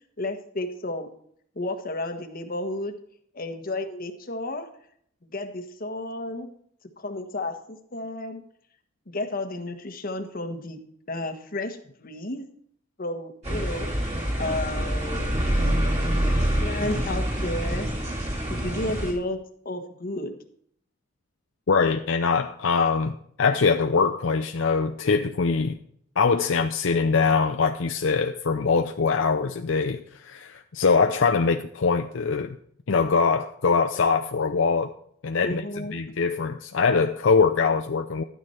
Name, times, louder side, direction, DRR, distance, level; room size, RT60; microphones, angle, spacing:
voice 1, 0.2-1.1 1.5-3.0 3.3-4.7 5.2-6.5 7.0-8.4 9.1-12.5 13.0-13.9 14.4-17.9 18.5-20.4 35.4-36.0, left 2 dB, 50° left, 1.4 m, -32 dB
sound 1, 13.4-19.1, equal, 35° right, 3.1 m, -26 dB
voice 2, 21.7-25.8 26.2-32.6 32.9-34.9 35.2-38.2, left 5 dB, 75° left, 0.6 m, -23 dB
12.5 x 9.4 x 4.4 m
head